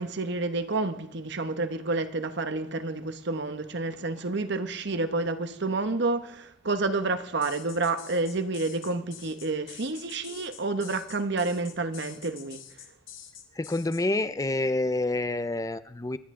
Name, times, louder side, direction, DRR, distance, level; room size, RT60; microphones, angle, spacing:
voice 1, 0.0-12.6, right 3 dB, 65° right, 1.1 m, -29 dB
sound 1, 7.4-14.0, left 9 dB, 90° left, 1.7 m, -46 dB
voice 2, 13.6-16.2, left 2 dB, 20° left, 0.5 m, -28 dB
26.0 x 10.5 x 3.8 m
head